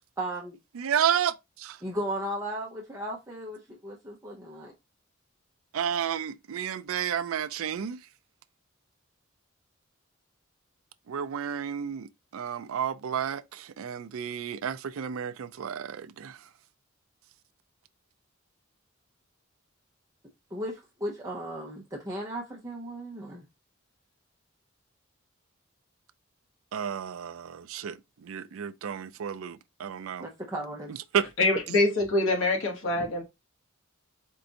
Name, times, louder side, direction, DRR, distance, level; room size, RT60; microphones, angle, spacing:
voice 1, 0.2-0.6 1.8-4.7 20.5-23.5 30.2-30.9, right 1 dB, 15° right, 0.8 m, -35 dB
voice 2, 0.7-1.8 5.7-8.0 11.1-16.4 26.7-30.3 30.9-31.3, right 8 dB, 90° right, 0.4 m, -31 dB
voice 3, 31.4-33.2, left 2 dB, 70° left, 1.5 m, -25 dB
4.5 x 2.6 x 3.9 m
head